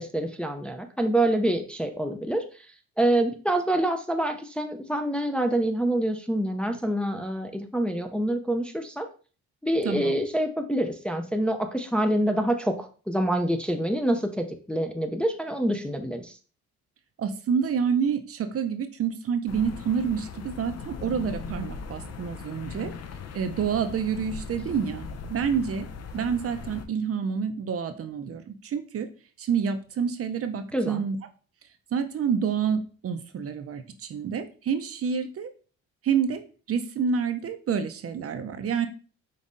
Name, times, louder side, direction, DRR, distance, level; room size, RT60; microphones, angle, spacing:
voice 1, 0.0-2.4 3.0-9.1 9.6-16.4 30.7-31.0, right 1 dB, 5° left, 5 dB, 0.5 m, -26 dB
voice 2, 17.2-22.9 23.3-25.9 26.1-29.1 29.4-31.2 31.9-35.5 36.0-36.4 36.7-38.9, right 7 dB, 50° right, 8 dB, 0.6 m, -28 dB
sound 1, 19.5-26.9, left 5 dB, 60° left, 0.6 m, -39 dB
5.3 x 3.1 x 2.6 m, 0.38 s
cardioid pair, 90°, 30 cm